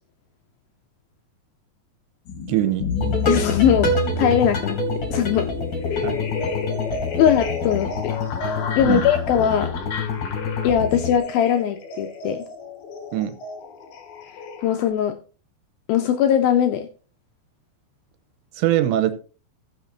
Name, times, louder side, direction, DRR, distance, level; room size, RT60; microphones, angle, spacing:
sound 1, 2.3-14.9, left 3 dB, 60° left, 2.3 m, -31 dB
voice 1, 2.5-2.9 6.0-6.2 8.8-9.0 13.1-13.4 18.6-19.2, right 13 dB, 85° right, 10 dB, 3.1 m, -21 dB
sound 2, 3.0-11.2, left 3 dB, 30° left, 3.3 m, -27 dB
voice 2, 3.3-4.8 5.1-5.5 5.9-6.1 7.1-8.1 8.8-9.7 10.6-12.5 14.6-15.2 15.9-16.9, left 9 dB, 85° left, 6 dB, 2.1 m, -20 dB
19.0 x 6.4 x 2.7 m, 0.35 s
omnidirectional pair, 5.1 m